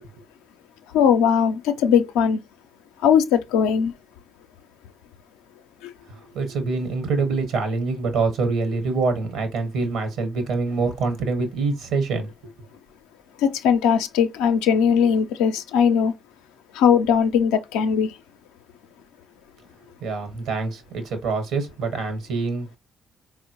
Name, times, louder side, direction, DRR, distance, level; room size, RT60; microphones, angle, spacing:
voice 1, 0.9-2.4 3.0-3.9 5.8-5.9 13.4-16.1 16.7-18.1, left 7 dB, 75° left, 0.4 m, -19 dB
voice 2, 6.2-12.5 20.0-22.8, right 4 dB, 70° right, 1.0 m, -25 dB
4.3 x 2.0 x 2.9 m
hypercardioid pair, 45°, 0 cm